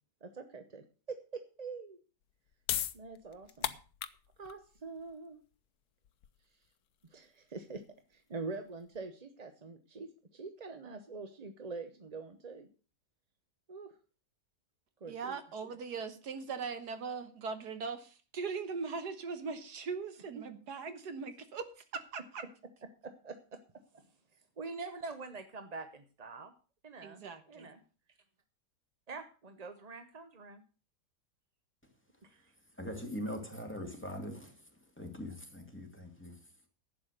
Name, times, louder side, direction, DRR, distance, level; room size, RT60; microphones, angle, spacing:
voice 1, 0.2-2.0 2.9-3.8 4.4-5.4 7.1-7.8 8.1-12.7 13.7-13.9 15.0-15.4 20.3-20.4 23.0-23.6 23.9-24.1 24.6-26.5 26.8-27.8 29.1-30.6 32.2-32.5, right 4 dB, 35° right, 8 dB, 0.7 m, -45 dB
sound 1, 2.2-9.0, left 11 dB, 70° left, 1.3 m, -41 dB
voice 2, 15.1-22.4 27.0-27.7, right 5 dB, 75° right, 10 dB, 1.8 m, -40 dB
voice 3, 32.8-34.6 35.0-36.3, equal, 5° left, 3 dB, 2.3 m, -41 dB
11.5 x 8.4 x 6.5 m, 0.37 s
omnidirectional pair, 1.8 m